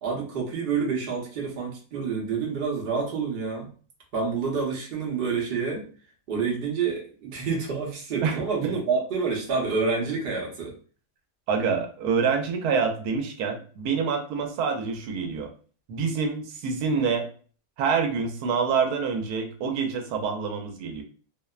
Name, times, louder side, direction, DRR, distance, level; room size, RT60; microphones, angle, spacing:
voice 1, 0.0-3.7 4.1-5.8 6.3-10.7, right 5 dB, 45° right, -2 dB, 0.8 m, -28 dB
voice 2, 8.2-8.7 11.5-15.5 15.9-17.3 17.8-21.0, right 5 dB, 85° right, 4 dB, 1.1 m, -26 dB
2.8 x 2.0 x 2.3 m, 0.40 s
omnidirectional pair, 1.6 m